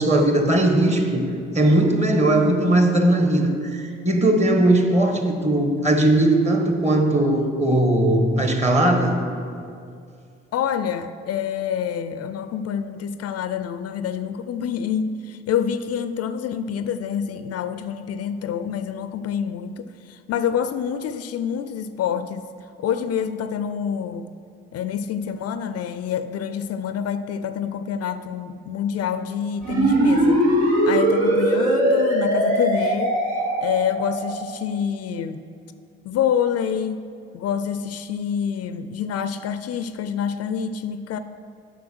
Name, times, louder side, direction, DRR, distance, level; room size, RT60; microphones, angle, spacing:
voice 1, 0.0-9.2, right 1 dB, 25° right, 4 dB, 1.4 m, -19 dB
voice 2, 10.5-22.5 22.8-24.3 24.7-30.4 30.8-33.2 33.6-35.4 36.0-37.1 37.3-41.2, left 8 dB, 60° left, 11 dB, 0.5 m, -27 dB
sound 1, 29.6-34.4, right 1 dB, 70° right, 1.5 m, -20 dB
7.7 x 5.5 x 6.2 m, 2.4 s
hypercardioid pair, 50°, 29 cm